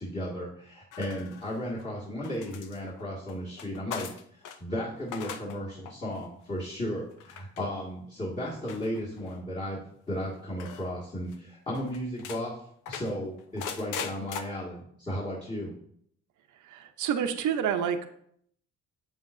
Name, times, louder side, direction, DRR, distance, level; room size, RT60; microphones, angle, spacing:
voice 1, 0.0-9.8 10.1-12.6 12.9-15.7, equal, 25° left, -6 dB, 2.0 m, -35 dB
sound 1, 0.9-1.8 2.2-4.6 5.0-5.6 5.9-6.2 7.2-7.6 8.7-9.4 10.6-10.9 11.3-11.4 11.7-12.4 12.9-14.4, left 7 dB, 85° left, 0.7 m, -40 dB
voice 2, 16.7-18.1, right 8 dB, 80° right, 7 dB, 0.8 m, -28 dB
7.8 x 7.4 x 2.6 m, 0.68 s
cardioid pair, 90°, 30 cm